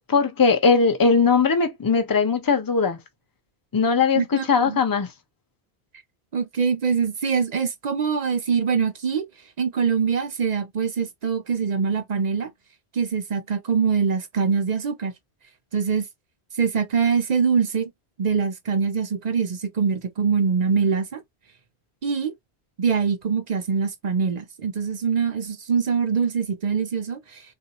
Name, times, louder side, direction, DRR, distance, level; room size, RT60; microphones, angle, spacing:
voice 1, 0.1-3.0 3.7-5.1, left 5 dB, 25° left, 0.6 m, -19 dB
voice 2, 4.1-4.8 6.3-9.3 9.6-12.5 12.9-15.1 15.7-16.1 16.5-17.9 18.2-21.2 22.0-22.3 22.8-27.4, right 6 dB, 50° right, 0.6 m, -23 dB
3.7 x 2.4 x 2.8 m
omnidirectional pair, 1.1 m